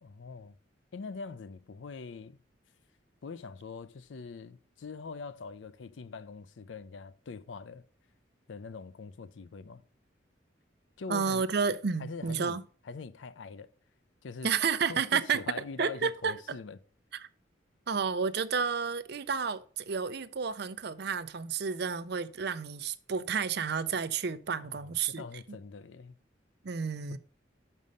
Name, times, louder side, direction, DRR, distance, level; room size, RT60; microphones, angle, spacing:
voice 1, 0.0-0.6 0.9-2.4 3.2-7.8 8.5-9.8 11.0-11.5 12.0-12.6 12.8-13.7 14.2-14.5 14.9-16.8 24.6-26.2 27.1-27.2, left 4 dB, 80° left, 0.5 m, -43 dB
voice 2, 11.1-12.6 14.4-15.4 15.8-16.4 17.2-17.3 17.9-25.2 26.6-27.2, right 6 dB, 60° right, 0.5 m, -31 dB
6.4 x 5.4 x 5.4 m
head